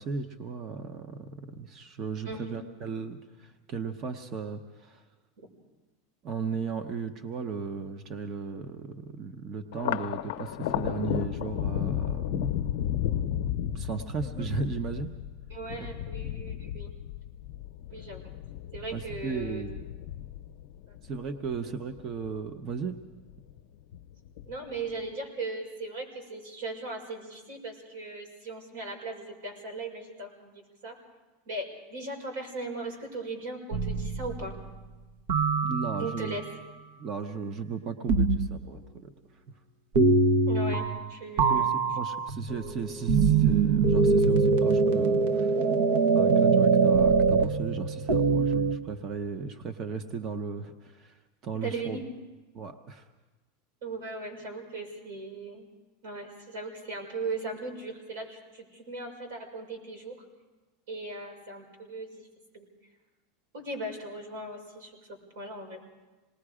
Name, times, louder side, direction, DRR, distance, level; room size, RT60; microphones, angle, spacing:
voice 1, 0.0-5.0 6.2-12.3 13.7-15.1 15.8-16.1 18.9-19.8 21.0-23.0 35.6-36.4 37.0-39.1 41.4-45.6 46.1-52.0 52.5-53.1, right 5 dB, 25° right, 7 dB, 0.8 m, -36 dB
voice 2, 2.2-2.6 14.2-14.5 15.5-16.9 17.9-18.3 18.7-19.6 20.9-21.0 24.4-31.0 31.5-34.6 36.0-36.4 40.5-41.7 51.5-52.0 53.8-55.7 56.0-60.2 60.9-62.3 62.5-62.7 63.5-65.8, right 2 dB, 90° right, 3 dB, 6.0 m, -38 dB
Thunder, 9.7-22.4 22.8-23.6 23.9-24.8, left 11 dB, 65° left, 0.8 m, -34 dB
sound 1, 33.7-34.5 35.3-36.4 38.1-38.7 39.9-41.1 41.4-48.8, right 4 dB, 60° right, 0.9 m, -23 dB
27.0 x 20.0 x 4.9 m, 1.2 s
supercardioid pair, 175°, 0 cm